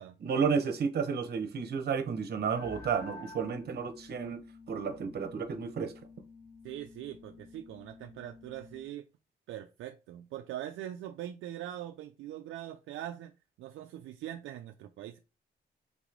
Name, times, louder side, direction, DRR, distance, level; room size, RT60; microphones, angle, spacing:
voice 1, 0.2-4.4 4.7-5.9, right 6 dB, 55° right, 0.9 m, -32 dB
sound 1, 2.6-8.9, left 3 dB, 50° left, 2.2 m, -51 dB
voice 2, 6.6-9.0 9.5-13.3 13.6-15.2, right 12 dB, 75° right, 0.4 m, -42 dB
3.6 x 3.1 x 3.8 m
cardioid pair, 90°, 20 cm